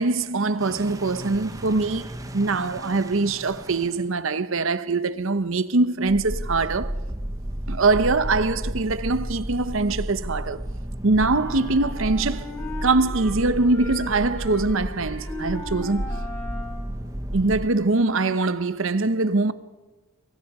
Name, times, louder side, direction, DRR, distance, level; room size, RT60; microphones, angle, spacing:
voice 1, 0.0-6.9 7.7-10.6 11.0-12.5 12.8-16.1 17.3-19.5, right 3 dB, 65° right, 0.9 m, -23 dB
sound 1, 0.6-4.0 6.1-17.7, right 1 dB, 15° right, 1.0 m, -33 dB
sound 2, 11.2-17.0, left 2 dB, 10° left, 4.6 m, -38 dB
28.0 x 22.5 x 4.9 m
head